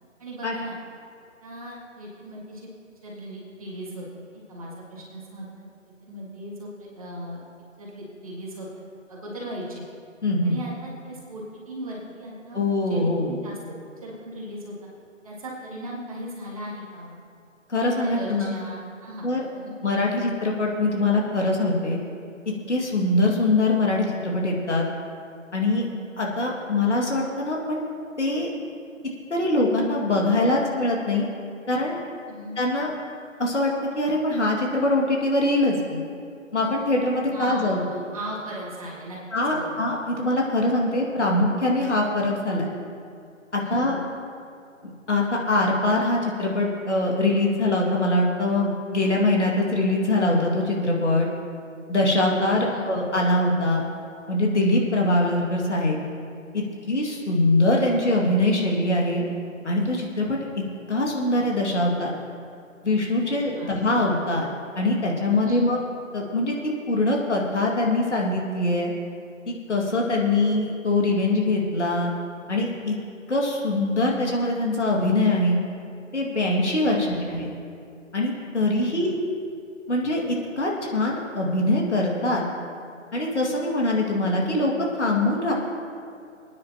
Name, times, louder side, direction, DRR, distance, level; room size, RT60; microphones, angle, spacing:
voice 1, 0.2-0.8 1.4-2.7 3.0-4.1 4.3-5.7 6.0-7.4 7.8-8.7 9.1-9.8 10.4-12.6 12.9-13.6 14.0-14.7 15.2-17.2 17.8-19.3 19.5-19.8 32.3-32.6 37.3-39.2 39.5-39.7 43.6-44.0 52.5-52.9 63.2-63.8 65.3-65.6 76.8-77.3 78.7-79.1, right 1 dB, 25° right, -4 dB, 1.8 m, -37 dB
voice 2, 10.2-10.6 12.5-13.4 17.7-18.5 19.2-19.5 19.8-22.0 22.5-24.8 25.5-25.9 26.2-27.9 28.2-28.5 29.3-31.3 31.7-32.0 32.6-32.9 33.4-36.0 36.5-37.8 39.3-42.7 43.5-44.0 44.8-51.3 51.9-53.8 54.3-56.0 56.5-59.3 59.6-60.4 60.9-62.2 62.8-64.5 64.8-65.8 66.1-68.9 69.5-72.1 72.5-73.0 73.3-75.6 76.1-77.5 78.1-79.2 79.9-82.4 83.1-84.7 85.0-85.5, left 2 dB, 60° left, -1 dB, 2.2 m, -23 dB
23.0 x 9.6 x 2.9 m, 2.4 s
figure-of-eight pair, 155°, 39 cm